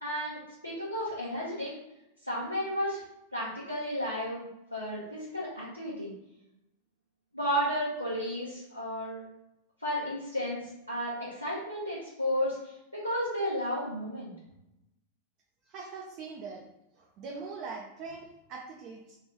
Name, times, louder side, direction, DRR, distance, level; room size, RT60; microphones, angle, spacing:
voice 1, 0.0-1.7 2.2-3.0 3.3-4.4 4.7-6.1 7.3-9.2 9.8-14.3, equal, 85° left, -7 dB, 0.9 m, -33 dB
voice 2, 15.7-16.6 17.0-19.2, right 4 dB, 40° right, 0 dB, 0.5 m, -42 dB
3.3 x 2.5 x 4.5 m, 0.89 s
figure-of-eight pair, 90°, 0 cm